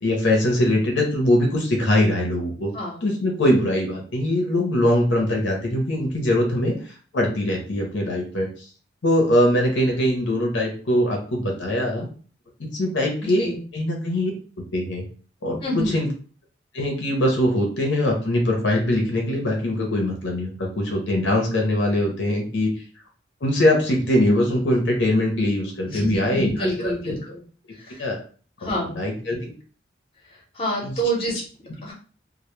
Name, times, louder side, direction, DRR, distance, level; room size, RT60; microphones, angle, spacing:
voice 1, 0.0-2.7 3.0-8.7 9.0-12.1 12.7-14.3 14.7-15.0 15.4-16.1 16.7-22.7 23.4-27.2 28.0-28.2 29.0-29.5 30.8-30.9, left 1 dB, 70° left, 1 dB, 0.6 m, -22 dB
voice 2, 13.2-13.6 15.6-16.0 25.9-27.4 27.8-28.0 28.6-29.0 30.5-31.4 31.8-31.9, right 1 dB, 30° left, -2 dB, 0.7 m, -27 dB
2.1 x 2.0 x 2.9 m, 0.41 s
head